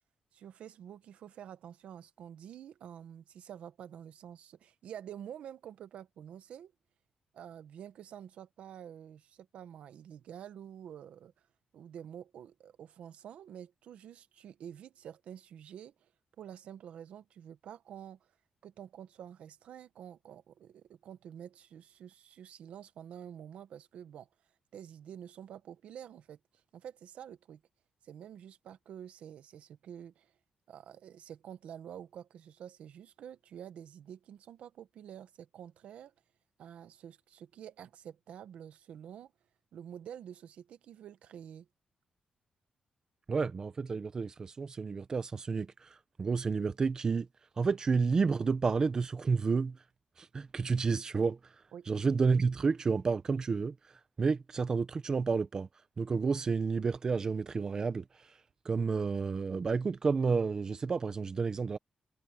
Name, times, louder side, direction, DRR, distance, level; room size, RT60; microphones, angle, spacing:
voice 1, 0.3-6.7 7.3-11.3 11.7-16.1 16.4-18.3 18.6-24.3 24.7-26.4 26.7-27.6 28.0-30.3 30.7-36.1 36.6-39.3 39.7-41.7 51.7-51.9, right 9 dB, 90° right, 1.1 m, -48 dB
voice 2, 43.3-45.9 46.2-47.3 47.6-49.8 50.2-51.4 51.9-53.7 54.2-55.7 56.0-58.0 58.6-61.8, right 5 dB, 35° right, 1.0 m, -30 dB
wide cardioid pair, 145°, 2 cm